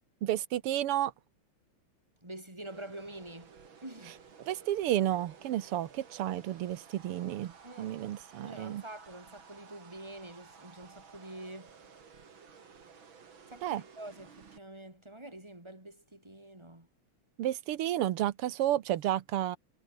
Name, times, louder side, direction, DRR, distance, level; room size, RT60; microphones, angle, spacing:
voice 1, 0.2-1.1 4.5-8.8 13.6-13.8 17.4-19.6, right 12 dB, 90° right, 2.0 m, -31 dB
voice 2, 2.2-3.5 3.8-4.2 7.6-8.0 8.4-11.7 13.5-16.9, right 1 dB, 10° right, 4.2 m, -46 dB
sound 1, 2.6-14.6, right 6 dB, 60° right, 3.3 m, -55 dB
omnidirectional pair, 2.4 m